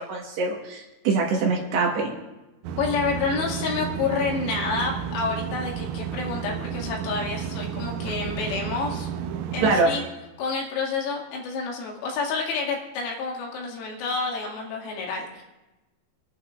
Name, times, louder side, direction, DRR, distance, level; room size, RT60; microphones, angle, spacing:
voice 1, 0.1-2.1 9.6-9.9, right 4 dB, 65° right, -1 dB, 3.1 m, -23 dB
sound 1, 2.6-9.9, right 8 dB, 80° right, 3.3 m, -32 dB
voice 2, 2.8-9.1 9.5-10.0 10.4-15.4, left 4 dB, 85° left, -2 dB, 4.9 m, -29 dB
27.0 x 11.5 x 2.5 m, 1.0 s
omnidirectional pair, 6.0 m